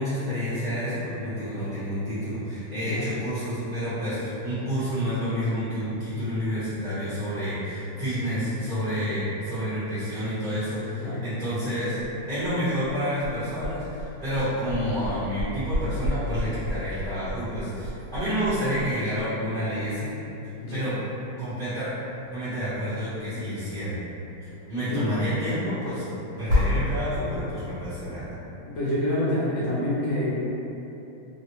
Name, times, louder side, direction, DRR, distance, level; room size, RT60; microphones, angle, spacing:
voice 1, 0.0-12.0 12.3-20.1 20.7-20.9 21.4-21.9 22.3-24.0 24.4-26.0 26.4-28.4, equal, 35° right, -17 dB, 0.8 m, -29 dB
sound 1, 11.7-27.6, left 1 dB, 80° right, 1.6 m, -33 dB
voice 2, 28.6-30.4, left 1 dB, 70° left, -9 dB, 1.4 m, -27 dB
3.8 x 2.1 x 2.9 m, 3.0 s
omnidirectional pair, 2.3 m